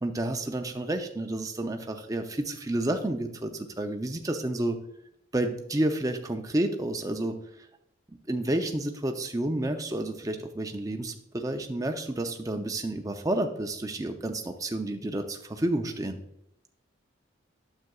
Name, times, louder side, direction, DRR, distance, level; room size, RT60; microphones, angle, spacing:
voice 1, 0.0-4.8 5.3-7.3 8.3-16.2, right 1 dB, 15° right, 5 dB, 0.5 m, -30 dB
9.2 x 7.2 x 2.3 m, 0.79 s
head